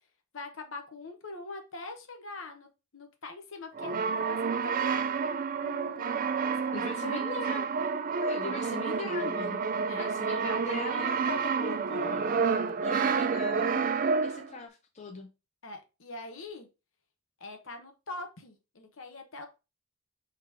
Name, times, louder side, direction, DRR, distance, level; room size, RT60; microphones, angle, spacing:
voice 1, 0.3-7.6 9.9-10.1 15.6-16.7 17.4-19.5, left 3 dB, 65° left, 5 dB, 1.0 m, -44 dB
Brass instrument, 3.7-14.6, right 5 dB, 40° right, 0.3 m, -29 dB
voice 2, 6.7-7.7 8.2-9.6 9.9-12.3 12.8-13.9 14.2-15.3, left 3 dB, 30° left, 2 dB, 0.5 m, -40 dB
3.7 x 3.0 x 4.7 m, 0.29 s
head